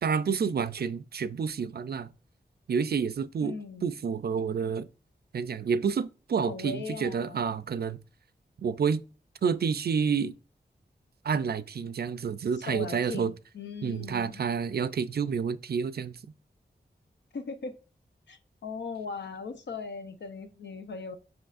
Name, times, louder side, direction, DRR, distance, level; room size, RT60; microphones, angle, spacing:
voice 1, 0.0-2.1 2.7-3.6 3.8-4.9 5.3-8.0 8.6-9.0 9.4-10.3 11.2-13.3 13.8-16.2, right 6 dB, 60° right, 0.4 m, -29 dB
voice 2, 3.4-3.9 6.5-7.4 12.7-14.4 17.3-17.8 18.3-21.2, left 4 dB, 80° left, 0.7 m, -39 dB
7.7 x 6.0 x 2.5 m
wide cardioid pair, 100°, 18 cm